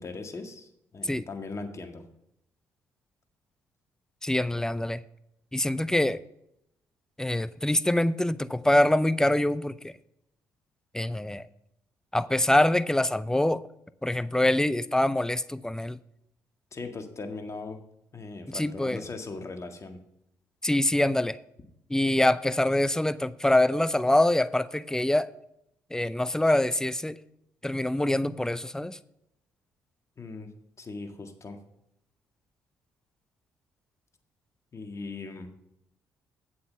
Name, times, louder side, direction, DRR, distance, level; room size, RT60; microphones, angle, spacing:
voice 1, 0.0-2.0 16.7-17.8 18.1-20.0 30.2-30.5 30.8-31.6 34.7-35.5, left 3 dB, 40° left, 1.7 m, -39 dB
voice 2, 4.2-5.0 5.5-6.2 7.2-9.9 10.9-11.5 12.1-13.6 14.0-16.0 18.5-19.0 20.6-21.4 21.9-25.3 25.9-27.2 27.6-29.0, left 1 dB, 5° left, 0.5 m, -25 dB
8.3 x 7.5 x 5.7 m
hypercardioid pair, 50°, 8 cm